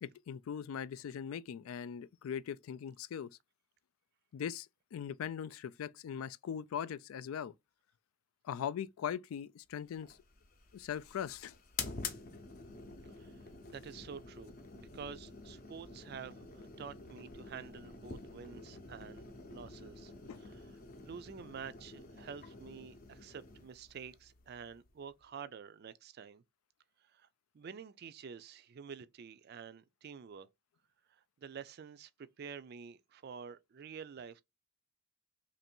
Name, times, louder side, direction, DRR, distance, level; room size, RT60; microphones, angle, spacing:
voice 1, 0.0-3.3 4.3-7.5 8.4-10.2 10.7-11.6 20.3-20.4, left 8 dB, 85° left, 0.3 m, -40 dB
sound 1, 9.9-25.2, left 4 dB, 45° left, 0.6 m, -48 dB
voice 2, 13.1-20.1 20.4-20.7 21.0-26.4 27.1-27.3 27.5-30.5 31.1-32.1 32.4-34.4, right 6 dB, 50° right, 0.3 m, -49 dB
3.0 x 2.6 x 4.3 m
head